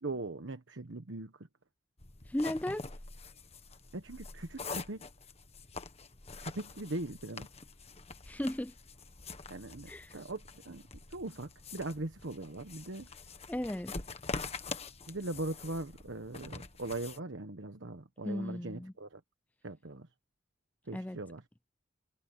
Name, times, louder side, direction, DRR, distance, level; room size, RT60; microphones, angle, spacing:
voice 1, 0.0-1.5 3.9-5.1 6.4-7.5 9.5-10.8 11.1-13.1 15.1-19.2 19.6-20.1 20.9-21.4, right 2 dB, 85° right, 1.3 m, -40 dB
sound 1, 2.0-17.2, left 4 dB, 35° left, 1.5 m, -45 dB
voice 2, 2.3-2.8 8.3-8.7 9.9-10.1 13.5-14.0 18.2-18.9 20.9-21.2, left 1 dB, 10° left, 0.4 m, -35 dB
head